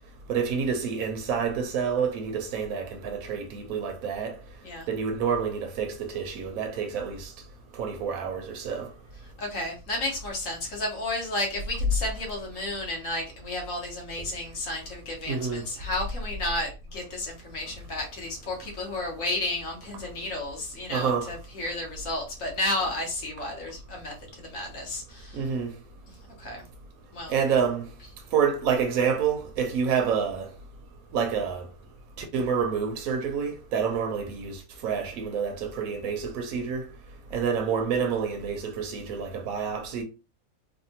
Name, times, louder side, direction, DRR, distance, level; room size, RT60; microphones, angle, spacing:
voice 1, 0.3-4.4 4.9-7.3 7.8-8.9 15.3-15.6 20.9-21.3 25.3-25.7 27.3-27.9 28.3-30.5 31.1-31.7 32.2-36.8 37.3-40.0, right 6 dB, 75° right, 1.0 m, -28 dB
voice 2, 9.4-25.4 26.4-26.6 27.1-27.3, left 1 dB, 60° left, 1.4 m, -32 dB
3.5 x 2.2 x 2.7 m
omnidirectional pair, 1.6 m